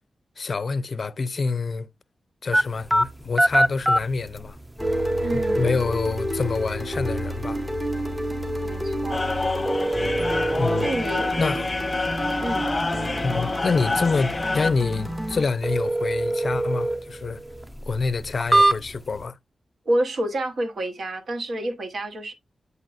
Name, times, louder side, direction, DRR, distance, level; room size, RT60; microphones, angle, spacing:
voice 1, 0.4-1.9 2.4-4.6 5.3-7.6 10.5-10.9 11.4-11.7 13.2-17.4 17.9-19.4, left 4 dB, 50° left, 0.4 m, -27 dB
sound 1, 2.5-19.2, right 1 dB, 5° right, 0.5 m, -27 dB
sound 2, 4.8-15.4, equal, 25° right, 2.5 m, -30 dB
voice 2, 5.2-5.8 8.6-9.2 10.8-11.4 12.4-12.6 19.9-22.3, right 1 dB, 70° right, 1.0 m, -28 dB
sound 3, 9.1-14.7, left 3 dB, 25° left, 0.9 m, -27 dB
8.1 x 5.1 x 2.5 m
wide cardioid pair, 110°, 0 cm